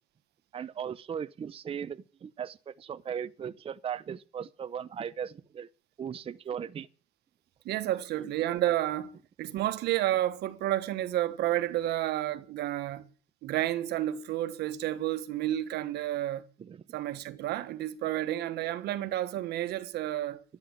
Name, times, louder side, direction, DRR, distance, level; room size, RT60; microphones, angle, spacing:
voice 1, 0.5-5.7 6.0-6.9 16.6-16.8, right 8 dB, 35° right, 0.7 m, -37 dB
voice 2, 7.6-9.1 9.4-13.1 13.4-16.5 16.9-20.4, right 13 dB, 75° right, 1.3 m, -30 dB
12.5 x 9.6 x 8.3 m
cardioid pair, 110°, 17 cm